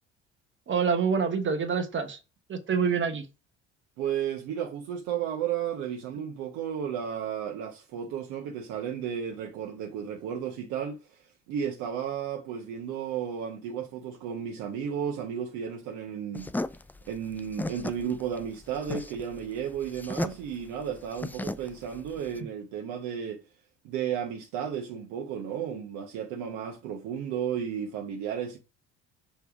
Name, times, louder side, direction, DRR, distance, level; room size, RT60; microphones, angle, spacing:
voice 1, 0.7-2.2 2.5-3.3, right 6 dB, 35° right, 1.1 m, -26 dB
voice 2, 4.0-16.5 17.1-23.4 23.8-28.6, right 8 dB, 60° right, 1.1 m, -33 dB
sound 1, 16.3-22.4, left 2 dB, 5° left, 0.4 m, -36 dB
6.9 x 3.3 x 4.9 m
figure-of-eight pair, 55°, 34 cm